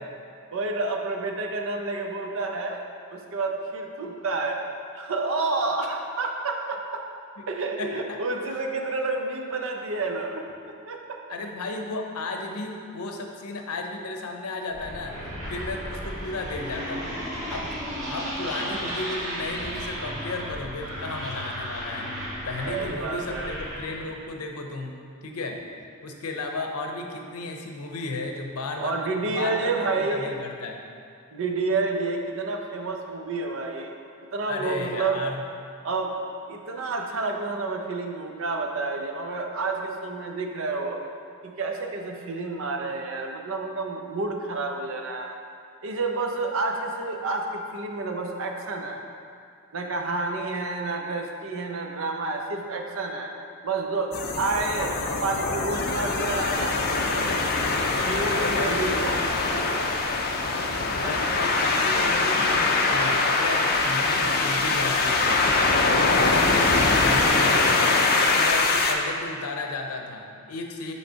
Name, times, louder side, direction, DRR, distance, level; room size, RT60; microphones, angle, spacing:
voice 1, 0.5-2.8 3.1-4.6 4.9-7.0 7.5-11.2 22.6-23.5 28.8-30.3 31.3-33.9 34.3-35.2 35.8-36.1 36.5-41.0 41.4-45.4 45.8-49.0 49.7-53.3 53.6-54.9 55.2-57.3 58.1-59.8 61.0-61.3, right 3 dB, 60° right, 2 dB, 0.6 m, -29 dB
voice 2, 7.8-8.2 8.5-8.6 11.3-15.1 15.5-17.7 18.1-22.1 22.4-25.6 26.0-30.8 34.5-35.5 58.3-58.8 60.5-60.7 61.0-65.5 66.0-67.7 68.4-70.9, left 3 dB, 85° left, 3 dB, 0.6 m, -34 dB
sound 1, 14.7-24.1, equal, 35° right, 1.4 m, -34 dB
sound 2, 54.1-68.9, left 3 dB, 45° left, 0.4 m, -23 dB
5.4 x 3.2 x 5.6 m, 2.4 s
head